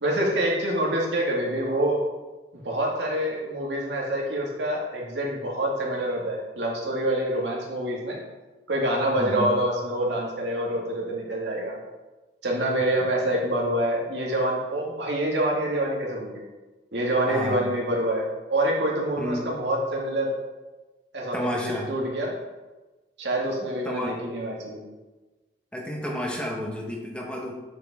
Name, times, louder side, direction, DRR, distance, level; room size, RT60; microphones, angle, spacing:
voice 1, 0.0-2.0 2.5-8.2 8.7-11.8 12.4-16.4 16.9-20.3 21.1-22.4 23.2-24.8, right 1 dB, 80° right, -2 dB, 2.0 m, -26 dB
voice 2, 9.2-9.5 17.3-17.8 19.2-19.5 21.3-21.9 23.8-24.2 25.7-27.5, equal, 5° left, -1 dB, 1.1 m, -31 dB
8.0 x 6.3 x 3.6 m, 1.2 s
head